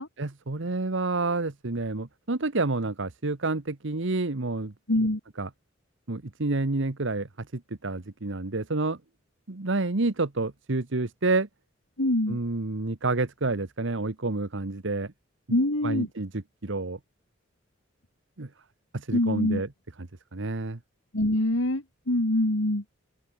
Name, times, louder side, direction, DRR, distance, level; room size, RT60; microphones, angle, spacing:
voice 1, 0.2-4.7 5.4-5.5 6.1-9.0 9.5-11.5 12.3-15.1 15.8-17.0 18.4-18.5 18.9-19.7 20.0-20.8, right 3 dB, 65° right, 1.3 m, -29 dB
voice 2, 4.9-5.2 12.0-12.4 15.5-16.1 19.1-19.6 21.1-22.8, left 1 dB, 75° left, 3.0 m, -24 dB
open air
head